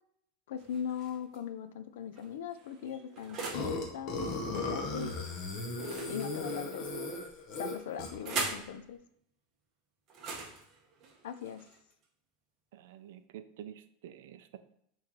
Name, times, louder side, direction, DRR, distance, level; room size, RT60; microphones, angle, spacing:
voice 1, 0.5-5.1 6.1-6.9 7.6-9.0 11.2-11.6, left 8 dB, 80° left, 11 dB, 0.4 m, -40 dB
sound 1, 0.6-1.4 2.1-3.7 5.7-6.9 7.7-8.7 10.1-12.0, right 4 dB, 25° right, 0.7 m, -41 dB
Burping eructation, 3.5-8.3, left 2 dB, 40° left, 0.8 m, -36 dB
voice 2, 12.7-14.6, right 10 dB, 70° right, 11 dB, 0.4 m, -48 dB
4.4 x 3.1 x 3.7 m, 0.71 s
supercardioid pair, 175°, 0 cm